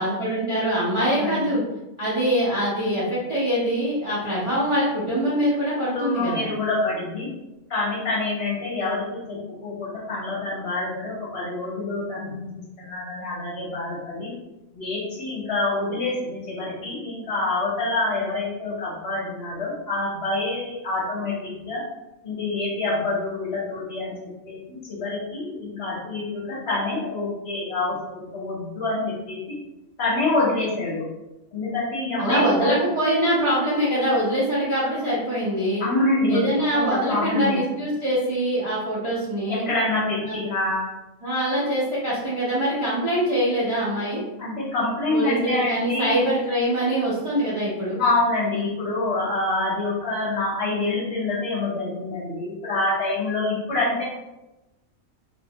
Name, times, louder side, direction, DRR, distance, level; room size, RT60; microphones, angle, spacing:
voice 1, 0.0-1.6 2.0-6.5 32.2-35.8 36.3-39.6 40.2-40.4 41.2-44.2 45.1-48.0, right 1 dB, 40° right, -10 dB, 0.4 m, -23 dB
voice 2, 1.0-1.4 5.9-7.3 7.7-12.5 12.8-14.3 14.7-21.8 22.2-29.6 30.0-31.1 31.5-32.8 35.8-37.6 39.5-40.8 44.4-46.2 48.0-54.0, left 2 dB, 55° left, -6 dB, 0.9 m, -26 dB
2.4 x 2.1 x 2.7 m, 0.99 s
omnidirectional pair, 1.4 m